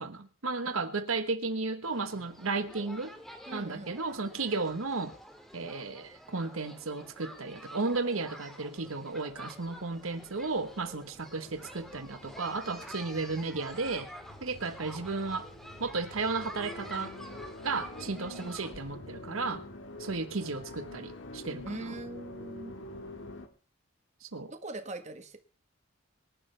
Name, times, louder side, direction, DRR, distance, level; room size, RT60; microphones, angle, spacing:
voice 1, 0.0-3.1 3.5-5.1 5.5-14.1 14.4-15.5 15.8-17.1 17.6-19.6 20.0-21.9 24.2-24.5, right 3 dB, 90° right, 1.3 m, -34 dB
sound 1, 1.8-18.7, equal, ahead, 2.0 m, -48 dB
sound 2, 3.5-4.5 4.9-6.2 7.4-8.2 9.1-9.2 10.1-10.2 10.8-14.9 15.2-15.3 18.6-21.4, left 1 dB, 30° left, 6.6 m, -63 dB
voice 2, 3.5-3.9 21.6-22.8 24.5-25.4, right 2 dB, 35° right, 1.4 m, -41 dB
sound 3, 9.4-23.5, left 2 dB, 65° left, 1.8 m, -47 dB
24.5 x 11.0 x 3.4 m
head